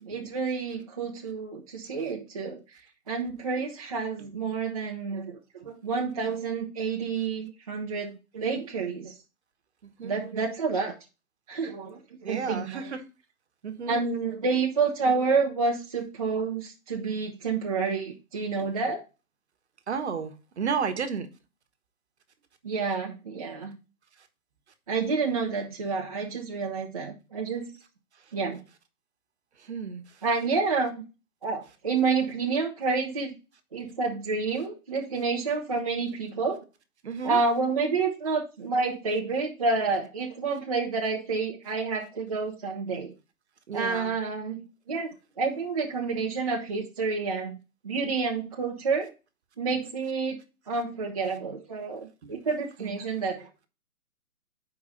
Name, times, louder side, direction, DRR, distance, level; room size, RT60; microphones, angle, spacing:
voice 1, 0.0-2.6 3.1-5.4 5.6-9.1 10.0-10.9 11.5-12.9 13.9-19.0 22.6-23.8 24.9-27.8 28.3-28.6 30.2-31.0 31.4-33.3 33.7-36.6 37.2-43.1 43.7-47.6 47.8-49.1 49.6-53.7, right 4 dB, 25° right, 0.6 m, -29 dB
voice 2, 12.2-13.0 13.6-14.0 19.9-21.3 29.7-30.0 37.0-37.4 43.7-44.1 52.2-52.4 52.8-53.0, right 6 dB, 50° right, 1.1 m, -32 dB
5.0 x 4.7 x 5.5 m
hypercardioid pair, 155°, 43 cm